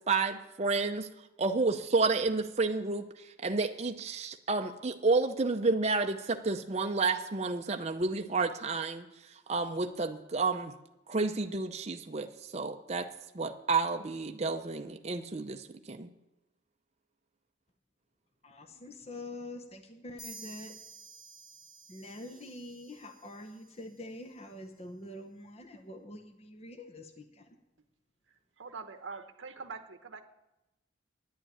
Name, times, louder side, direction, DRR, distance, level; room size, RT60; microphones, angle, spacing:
voice 1, 0.1-1.1 1.4-9.1 9.3-10.7 11.1-13.1 13.3-16.1, right 3 dB, 35° right, 5 dB, 0.6 m, -30 dB
voice 2, 18.4-20.7 21.9-27.5, left 1 dB, 30° left, 6 dB, 0.9 m, -45 dB
sound 1, 20.2-23.8, right 3 dB, 15° left, 4.8 m, -51 dB
voice 3, 28.6-30.2, right 4 dB, 75° right, 7 dB, 0.9 m, -44 dB
10.5 x 8.9 x 9.0 m, 0.97 s
head